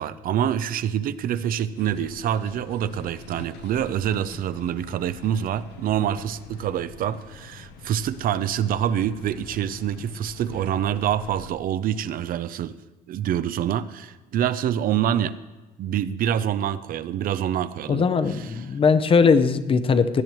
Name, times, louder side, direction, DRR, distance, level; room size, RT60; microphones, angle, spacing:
voice 1, 0.0-12.8 13.1-15.4 15.8-18.6, right 10 dB, 60° right, 14 dB, 0.5 m, -26 dB
sound 1, 1.7-11.5, left 4 dB, 80° left, 1.0 m, -44 dB
voice 2, 17.9-20.2, left 5 dB, 30° left, 11 dB, 0.6 m, -19 dB
17.0 x 10.5 x 3.0 m, 1.2 s
cardioid pair, 110°, 17 cm